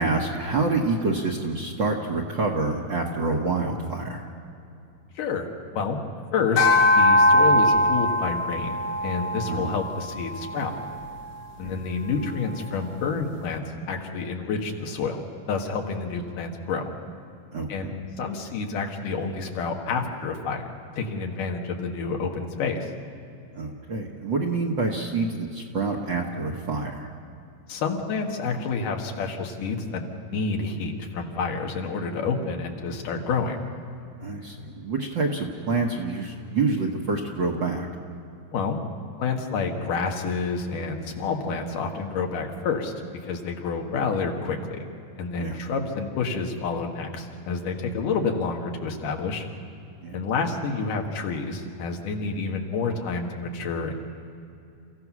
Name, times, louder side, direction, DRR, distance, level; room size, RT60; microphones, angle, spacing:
voice 1, 0.0-4.3 9.5-9.7 11.6-11.8 17.5-18.0 23.5-27.1 34.2-37.9 45.4-45.6 50.0-50.2, right 3 dB, 55° right, 0 dB, 1.4 m, -27 dB
voice 2, 5.2-6.0 6.3-10.7 11.6-16.8 17.7-22.8 27.7-33.6 38.5-38.8 39.2-44.8 45.2-49.5 50.1-53.9, left 4 dB, 85° left, 2 dB, 3.2 m, -29 dB
sound 1, 6.6-11.2, left 1 dB, 65° left, 2.9 m, -21 dB
28.5 x 15.5 x 6.1 m, 2.7 s
omnidirectional pair, 3.6 m